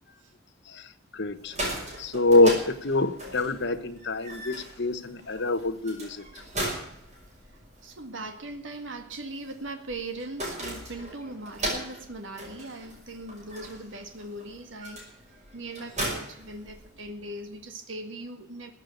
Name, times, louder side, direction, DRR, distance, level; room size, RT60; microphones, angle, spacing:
voice 1, 0.7-1.5 2.0-6.2, left 2 dB, 60° left, 9 dB, 1.2 m, -25 dB
sound 1, 1.3-17.2, right 1 dB, 35° right, 5.9 m, -38 dB
voice 2, 7.8-15.0 15.5-18.7, right 2 dB, 70° right, 6 dB, 1.9 m, -39 dB
15.0 x 8.3 x 8.5 m, 0.71 s
head